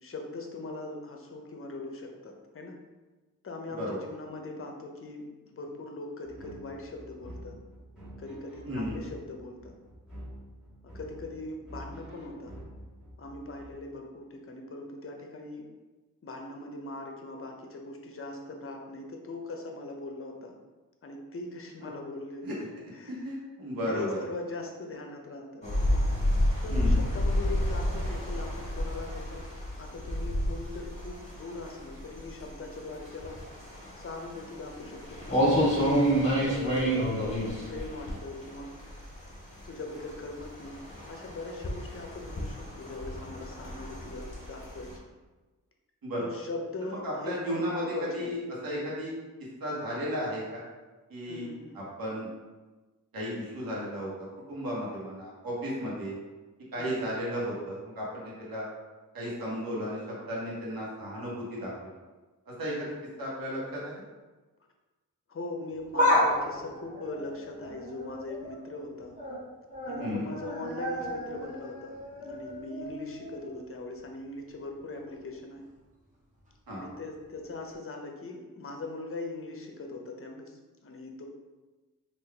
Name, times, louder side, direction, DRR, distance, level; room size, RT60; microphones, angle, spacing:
voice 1, 0.0-2.7 3.4-7.6 8.2-9.7 10.9-12.5 13.2-15.7 16.2-20.5 21.0-22.4 22.9-23.3 23.8-25.7 26.6-29.5 29.8-33.4 34.0-35.8 36.4-38.7 39.7-40.8 41.1-45.0 46.2-48.4 51.2-51.8 56.8-57.0 65.3-69.2 69.9-75.6 76.7-81.3, left 2 dB, 40° left, 2 dB, 0.6 m, -41 dB
sound 1, 6.3-13.7, equal, ahead, 1.4 m, -47 dB
voice 2, 8.7-9.0 21.8-21.9 22.4-22.5 23.1-24.2 26.7-27.0 46.0-46.3 46.9-48.4 48.6-49.1 49.6-50.6 51.1-51.5 51.7-52.3 53.1-56.1 56.7-58.6 59.1-61.9 62.5-63.9 70.0-70.3 76.7-76.9, equal, 75° right, -5 dB, 1.1 m, -34 dB
sound 2, 25.6-39.2 39.6-44.9, equal, 20° left, 1.5 m, -29 dB
sound 3, 65.7-68.6 68.9-69.4 69.7-73.6 74.0-74.1 75.1-75.2, left 1 dB, 20° right, 0.9 m, -32 dB
3.7 x 2.5 x 3.3 m, 1.2 s
wide cardioid pair, 100°, 35 cm